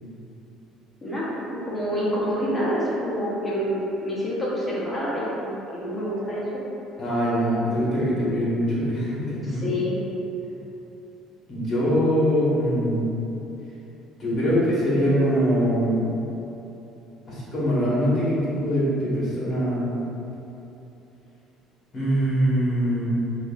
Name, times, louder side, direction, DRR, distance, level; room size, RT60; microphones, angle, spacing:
voice 1, 1.0-6.4 9.4-10.0, equal, 10° left, -8 dB, 0.8 m, -27 dB
voice 2, 7.0-9.6 11.5-13.0 14.2-16.0 17.3-19.9 21.9-23.1, equal, 35° left, -8 dB, 1.2 m, -23 dB
4.7 x 2.4 x 2.4 m, 3.0 s
cardioid pair, 155°, 0 cm